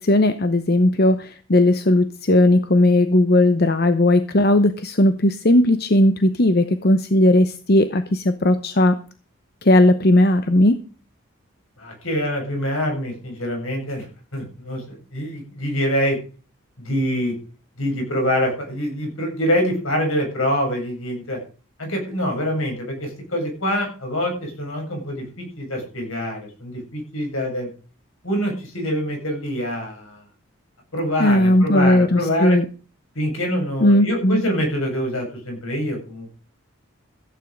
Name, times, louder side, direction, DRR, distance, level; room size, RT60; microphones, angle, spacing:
voice 1, 0.0-9.0 9.6-10.8 31.2-32.7 33.8-34.4, left 1 dB, 45° left, 10 dB, 0.8 m, -17 dB
voice 2, 11.8-14.0 14.3-16.2 16.8-17.3 17.8-21.4 21.8-27.7 28.2-30.2 30.9-32.6 33.2-36.3, equal, 75° left, 1 dB, 7.4 m, -25 dB
15.0 x 9.4 x 5.2 m, 0.38 s
head